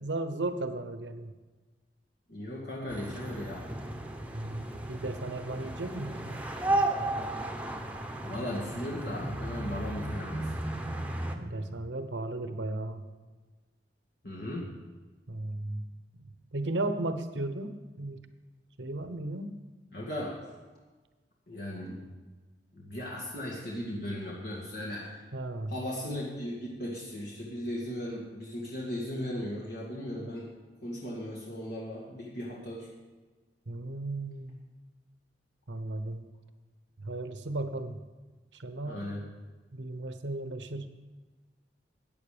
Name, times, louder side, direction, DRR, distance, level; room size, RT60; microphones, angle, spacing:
voice 1, 0.0-1.3 4.3-6.4 11.4-13.0 15.3-15.9 16.2-18.3 18.8-19.5 25.3-25.7 33.7-34.6 35.7-36.2 37.0-38.0 38.5-39.1 39.7-40.9, right 2 dB, 80° right, 9 dB, 1.0 m, -35 dB
voice 2, 2.3-3.7 8.2-10.5 14.2-14.7 19.9-20.4 21.5-22.0 22.7-25.2 25.7-30.5 30.8-32.9 38.8-39.2, left 1 dB, 60° left, -4 dB, 2.0 m, -37 dB
sound 1, 2.9-11.4, right 1 dB, 10° right, 1.0 m, -34 dB
14.5 x 9.4 x 5.1 m, 1.3 s
head